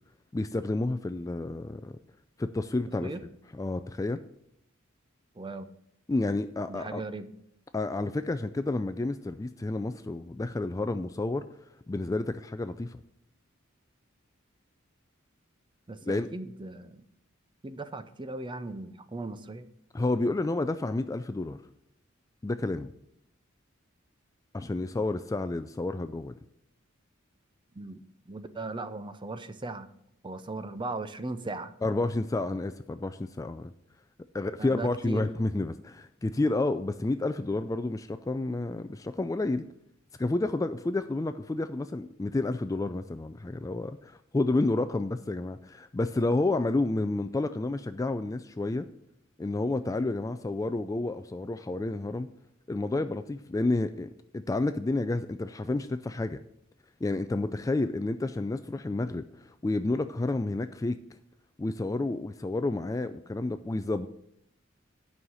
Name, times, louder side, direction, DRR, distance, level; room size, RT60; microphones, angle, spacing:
voice 1, 0.3-2.0 2.4-3.1 3.5-4.2 6.1-7.0 7.7-11.4 11.9-13.0 16.1-16.3 19.9-21.6 22.4-22.9 24.5-26.3 31.8-33.7 34.3-39.6 40.2-48.9 49.4-52.3 52.7-56.4 57.0-61.0 61.6-64.1, left 2 dB, 15° left, 10 dB, 0.3 m, -30 dB
voice 2, 5.4-5.7 6.7-7.3 15.9-17.0 17.6-19.7 27.8-29.9 30.2-31.7 34.6-35.2, right 2 dB, 25° right, 11 dB, 0.6 m, -38 dB
9.7 x 5.6 x 6.2 m, 0.76 s
head